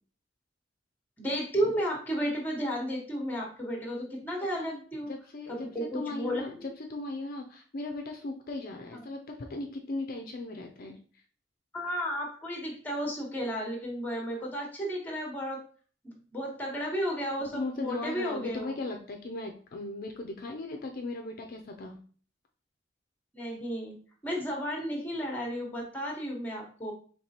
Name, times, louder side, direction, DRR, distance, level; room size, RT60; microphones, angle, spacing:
voice 1, 1.2-5.1 5.5-6.7 8.9-9.0 11.7-15.6 16.0-18.8 23.3-23.9 24.2-26.9, equal, 10° left, 0 dB, 1.1 m, -33 dB
voice 2, 4.5-11.0 17.5-22.0, left 2 dB, 50° left, 3 dB, 0.4 m, -38 dB
4.5 x 3.2 x 2.8 m, 0.43 s
head